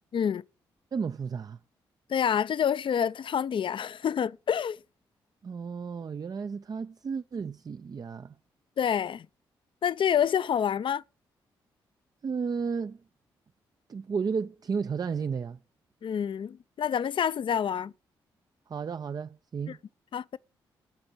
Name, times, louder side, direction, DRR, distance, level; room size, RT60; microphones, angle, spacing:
voice 1, 0.9-1.6 5.4-8.4 12.2-13.0 13.9-15.6 18.7-19.8, right 5 dB, 40° right, 0.4 m, -33 dB
voice 2, 2.1-4.8 8.8-9.3 9.8-11.0 16.0-17.9 19.7-19.8 20.1-20.4, left 8 dB, 55° left, 0.5 m, -27 dB
11.5 x 4.4 x 7.8 m
hypercardioid pair, 45°, 10 cm